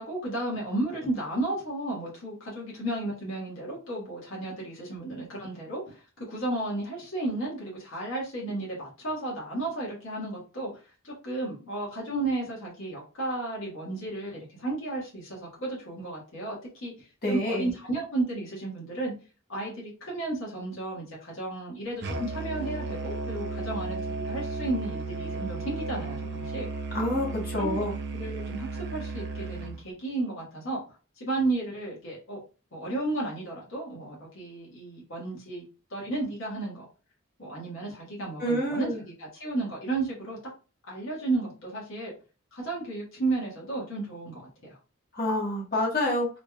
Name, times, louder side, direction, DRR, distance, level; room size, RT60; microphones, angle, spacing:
voice 1, 0.0-10.8 11.0-19.1 19.5-26.7 27.6-27.8 28.1-32.4 32.7-35.7 35.9-36.8 37.4-40.4 40.9-42.1 42.5-44.8, right 2 dB, 75° left, -4 dB, 1.7 m, -33 dB
voice 2, 17.2-17.7 26.9-27.9 38.4-39.0 45.1-46.3, left 1 dB, 45° left, -3 dB, 1.5 m, -27 dB
Musical instrument, 22.0-29.8, right 3 dB, 55° right, 0.5 m, -34 dB
3.9 x 3.2 x 2.4 m, 0.34 s
head